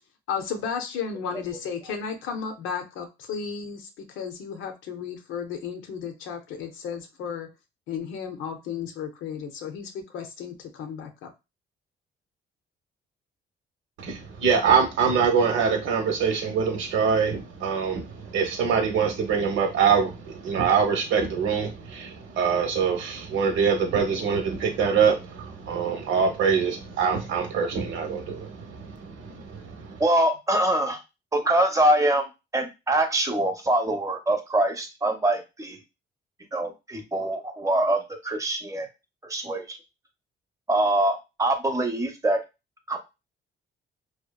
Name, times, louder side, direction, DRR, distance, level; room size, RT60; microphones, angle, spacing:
voice 1, 0.3-7.5 7.9-11.3, left 6 dB, 90° left, 5 dB, 0.6 m, -34 dB
voice 2, 14.0-30.0, right 6 dB, 80° right, 4 dB, 0.8 m, -24 dB
voice 3, 30.0-31.0 31.3-32.3 32.5-35.8 36.5-38.9 39.2-39.8 40.7-42.4 42.9-43.0, right 1 dB, 15° right, 5 dB, 0.6 m, -24 dB
2.7 x 2.2 x 2.2 m, 0.25 s
cardioid pair, 90°, 20 cm